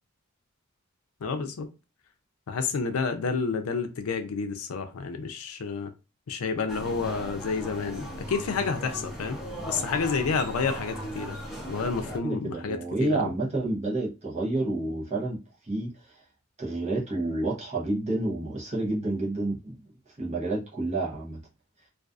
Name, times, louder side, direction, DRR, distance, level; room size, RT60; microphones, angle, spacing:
voice 1, 1.2-1.7 2.5-5.9 6.3-9.4 9.7-11.4 11.7-13.3, left 5 dB, 80° left, 0.4 m, -30 dB
sound 1, 6.7-12.2, equal, ahead, 0.8 m, -37 dB
voice 2, 12.2-15.9 16.6-19.8 20.2-21.4, right 2 dB, 30° right, 0.7 m, -29 dB
2.5 x 2.3 x 2.3 m
head